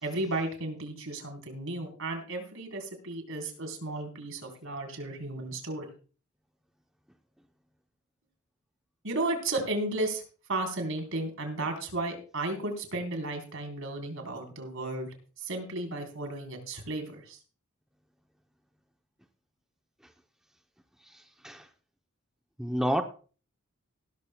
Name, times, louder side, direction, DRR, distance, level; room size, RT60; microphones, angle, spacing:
voice 1, 0.0-5.9 9.0-10.2 10.5-17.4, right 2 dB, 65° right, 3.8 m, -34 dB
voice 2, 21.1-21.7 22.6-23.0, equal, 5° right, 0.6 m, -30 dB
18.0 x 13.0 x 2.2 m
head